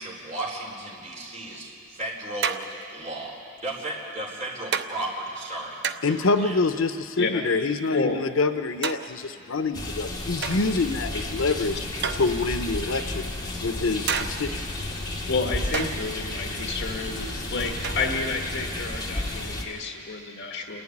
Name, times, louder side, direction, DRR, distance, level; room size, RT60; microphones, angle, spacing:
voice 1, 0.0-2.6 2.9-5.8 6.1-6.6, right 1 dB, 40° right, -3 dB, 4.2 m, -35 dB
sound 1, 1.5-1.6 2.4-3.1 4.0-4.1 4.7-4.9 5.8-6.3 7.5-8.1 8.8-9.4 10.4-10.9 12.0-12.7 14.1-14.6 15.7-16.1 17.8-18.3, right 6 dB, 60° right, 0.8 m, -31 dB
voice 2, 6.0-11.8 12.1-13.3 13.6-14.6, left 3 dB, 80° left, 10 dB, 0.8 m, -26 dB
sound 2, 9.7-19.6, left 1 dB, 20° left, 2.4 m, -32 dB
voice 3, 15.3-20.8, left 3 dB, 60° left, 2 dB, 1.4 m, -30 dB
28.0 x 11.5 x 9.8 m, 2.5 s
head